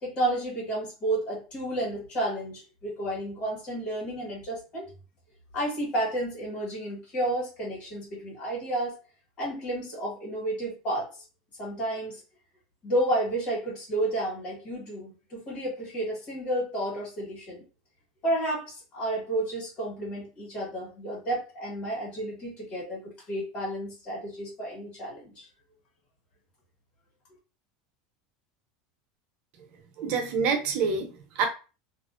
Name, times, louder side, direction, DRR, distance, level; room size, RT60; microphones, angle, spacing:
voice 1, 0.0-4.9 5.5-9.0 9.4-11.1 11.6-12.2 12.8-17.6 18.2-25.5, right 1 dB, 40° left, -4 dB, 1.4 m, -31 dB
voice 2, 30.0-31.5, right 5 dB, 55° right, 3 dB, 0.7 m, -27 dB
2.5 x 2.0 x 2.4 m, 0.34 s
supercardioid pair, 130°, 3 cm